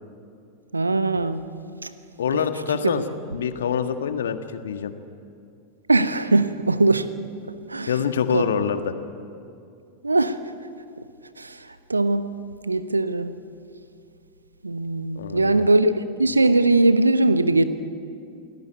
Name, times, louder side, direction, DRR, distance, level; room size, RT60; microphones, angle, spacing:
voice 1, 0.7-1.4 1.8-1.9 2.8-2.9 5.9-7.1 7.7-7.9 8.3-8.4 10.0-10.4 11.4-11.6 11.9-12.2 12.7-13.4 14.6-15.9 16.2-17.6, right 2 dB, 80° right, 12 dB, 1.1 m, -20 dB
voice 2, 2.2-3.0 3.3-4.9 7.9-8.9 15.1-15.7, left 7 dB, 65° left, 9 dB, 1.6 m, -25 dB
28.5 x 18.5 x 9.2 m, 2.5 s
figure-of-eight pair, 90°, 0 cm